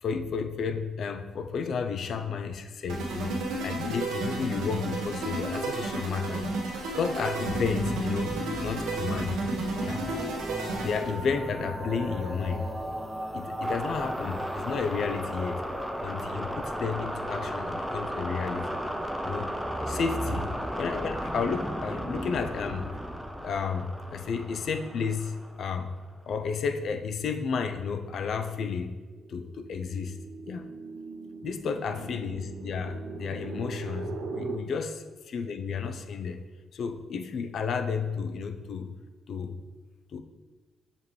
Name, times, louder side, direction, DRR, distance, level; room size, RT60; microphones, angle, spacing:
voice 1, 0.0-9.4 9.8-10.1 10.8-12.7 13.3-15.6 16.0-18.8 19.2-19.5 19.9-20.5 20.8-22.9 23.4-25.9 26.3-28.9 29.3-30.2 30.5-30.7 31.4-36.4 36.7-38.9 39.3-39.6 40.1-40.2, left 5 dB, 60° left, 8 dB, 0.5 m, -32 dB
sound 1, 2.9-11.2, right 2 dB, 85° right, 1.1 m, -32 dB
sound 2, 7.5-26.0, equal, ahead, 0.5 m, -35 dB
sound 3, 26.1-34.6, right 4 dB, 60° right, 0.6 m, -41 dB
6.9 x 5.0 x 3.1 m, 1.3 s
cardioid pair, 90°, 0 cm